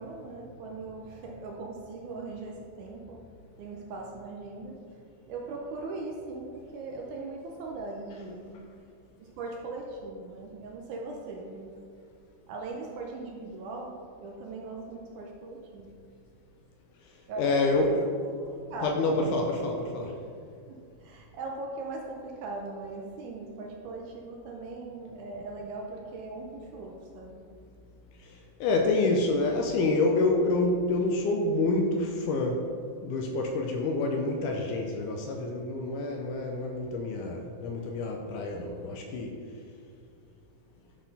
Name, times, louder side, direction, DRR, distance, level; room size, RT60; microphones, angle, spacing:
voice 1, 0.0-3.2 3.6-8.6 9.2-11.8 12.5-16.0 17.3-17.9 18.4-19.4 20.7-27.5, right 3 dB, 75° right, 0 dB, 1.9 m, -40 dB
voice 2, 17.4-18.1 18.8-20.1 28.2-32.7 33.0-39.4, left 2 dB, 80° left, 2 dB, 1.9 m, -27 dB
9.6 x 4.1 x 4.0 m, 2.2 s
omnidirectional pair, 4.0 m